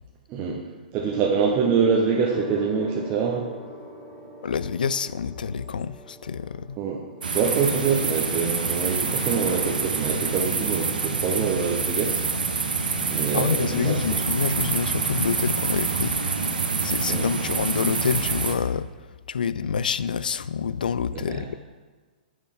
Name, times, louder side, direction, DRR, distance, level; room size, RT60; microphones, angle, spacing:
voice 1, 0.3-0.6 0.9-3.5 6.8-12.2 13.0-14.0 17.1-17.3 21.1-21.5, right 6 dB, 30° right, -1 dB, 0.9 m, -25 dB
Gong, 1.0-10.8 11.7-12.0, right 2 dB, 5° right, 1.5 m, -41 dB
voice 2, 4.4-6.8 13.3-16.4 16.8-18.9 19.3-21.6, left 6 dB, 70° left, 16 dB, 0.3 m, -27 dB
sound 1, 7.2-18.6, right 4 dB, 75° right, 0.9 m, -26 dB
8.9 x 6.5 x 3.5 m, 1.4 s
figure-of-eight pair, 110°, 5 cm